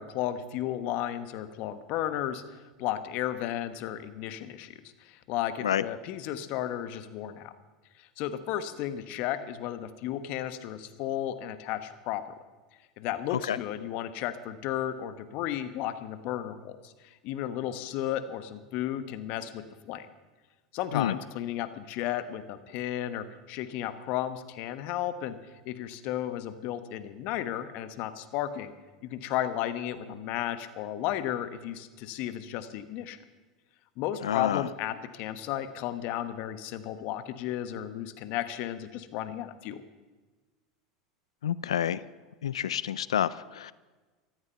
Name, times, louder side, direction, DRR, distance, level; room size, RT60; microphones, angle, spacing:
voice 1, 0.0-7.5 8.0-12.3 13.0-20.1 20.7-25.4 25.6-28.7 29.0-33.2 34.0-39.8, left 12 dB, 55° left, 12 dB, 1.2 m, -34 dB
voice 2, 34.2-34.6 41.4-42.0 42.4-43.7, left 10 dB, 85° left, 19 dB, 0.4 m, -28 dB
14.5 x 13.5 x 5.8 m, 1.3 s
hypercardioid pair, 90°, 3 cm